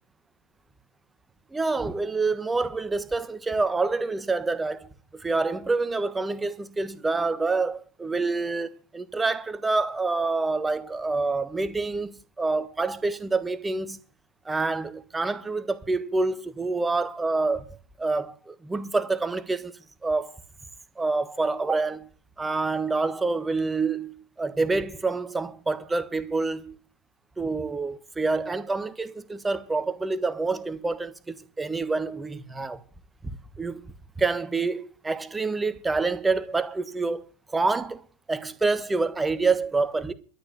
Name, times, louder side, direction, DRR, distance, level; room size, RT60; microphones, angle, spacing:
voice 1, 1.5-14.0 14.4-17.6 18.0-19.7 20.0-20.3 21.0-22.1 22.4-26.8 27.4-32.8 33.2-33.8 34.2-37.2 37.5-40.1, right 3 dB, 10° right, 1.3 m, -27 dB
12.5 x 9.0 x 7.4 m
figure-of-eight pair, 90°, 0 cm